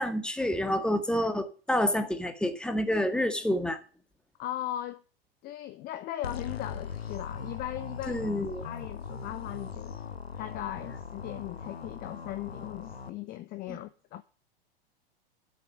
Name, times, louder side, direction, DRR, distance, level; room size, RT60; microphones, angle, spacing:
voice 1, 0.0-3.8 8.1-8.6 13.7-13.8, left 1 dB, 5° left, 1.6 m, -28 dB
voice 2, 4.4-5.0 5.4-8.3 8.6-9.9 10.4-14.2, left 13 dB, 30° left, 0.8 m, -38 dB
sound 1, 6.2-13.1, left 5 dB, 85° left, 1.2 m, -40 dB
11.5 x 6.9 x 8.6 m
figure-of-eight pair, 95°, 30 cm